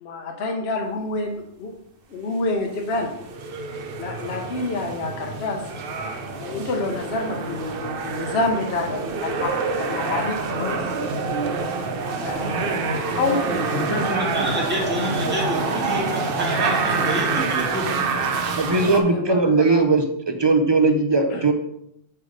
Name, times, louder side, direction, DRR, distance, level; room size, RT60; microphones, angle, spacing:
voice 1, 0.0-1.8 2.1-3.1 4.0-5.7 6.4-10.9 12.2-12.7 13.1-14.0 18.9-19.8 21.3-21.5, left 2 dB, 60° left, 2 dB, 1.0 m, -28 dB
sound 1, 2.9-19.0, right 4 dB, 55° right, 0.8 m, -26 dB
voice 2, 13.7-17.9, equal, 10° right, -3 dB, 1.6 m, -28 dB
voice 3, 18.6-21.5, right 3 dB, 35° right, 5 dB, 0.4 m, -19 dB
7.8 x 3.4 x 5.0 m, 0.78 s
omnidirectional pair, 1.3 m